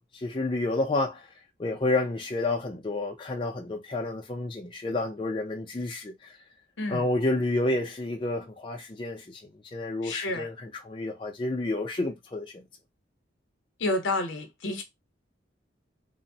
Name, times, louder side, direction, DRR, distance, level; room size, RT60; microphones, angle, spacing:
voice 1, 0.1-1.3 1.6-6.4 6.9-9.4 9.7-12.6, left 2 dB, 25° left, 0.4 m, -30 dB
voice 2, 10.0-10.5 13.8-14.8, left 2 dB, 80° left, 0.7 m, -29 dB
2.9 x 2.0 x 2.6 m
head